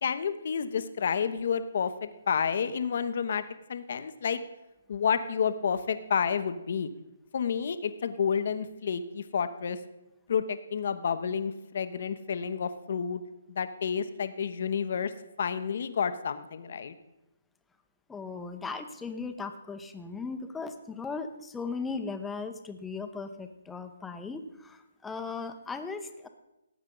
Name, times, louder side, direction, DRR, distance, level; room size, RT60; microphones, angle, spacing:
voice 1, 0.0-3.4 3.7-4.4 4.9-6.9 7.3-9.8 10.3-13.2 13.5-15.1 15.4-16.9, left 7 dB, 55° left, 11 dB, 1.0 m, -30 dB
voice 2, 18.1-26.3, left 4 dB, 5° left, 7 dB, 0.9 m, -37 dB
18.0 x 8.7 x 3.9 m, 0.97 s
figure-of-eight pair, 140°, 0 cm